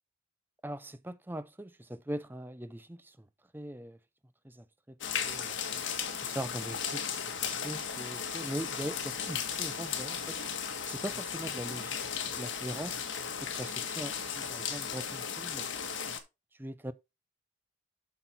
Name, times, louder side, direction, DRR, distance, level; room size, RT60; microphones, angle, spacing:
voice 1, 0.6-3.3 3.5-4.0 4.4-5.0 5.2-5.6 6.3-7.3 7.6-10.4 10.9-12.0 12.3-13.0 13.4-15.7 16.6-16.9, right 1 dB, 10° right, 0.6 m, -41 dB
sound 1, 5.0-16.2, left 7 dB, 65° left, 1.8 m, -36 dB
8.0 x 5.9 x 4.3 m
head